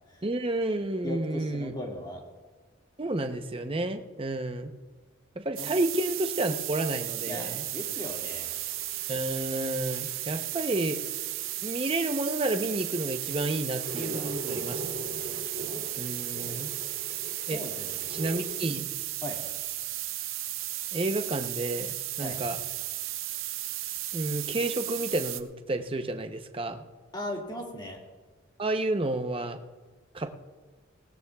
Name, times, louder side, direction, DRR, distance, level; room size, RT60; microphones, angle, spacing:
voice 1, 0.2-1.7 3.0-4.7 5.4-7.6 9.1-11.0 11.6-14.8 16.0-16.7 17.5-17.6 18.1-18.9 20.9-22.6 24.1-26.8 28.6-29.6 30.1-30.4, right 2 dB, 25° right, 7 dB, 0.8 m, -30 dB
voice 2, 1.0-2.2 5.6-5.8 7.3-8.6 14.0-14.7 17.5-17.9 19.2-19.4 22.2-22.5 27.1-28.0, left 1 dB, 20° left, -1 dB, 2.1 m, -38 dB
sound 1, 5.6-25.4, right 14 dB, 80° right, 0.7 m, -35 dB
sound 2, 7.8-18.6, right 2 dB, 55° right, 2.5 m, -43 dB
19.0 x 17.5 x 2.4 m, 1.3 s
head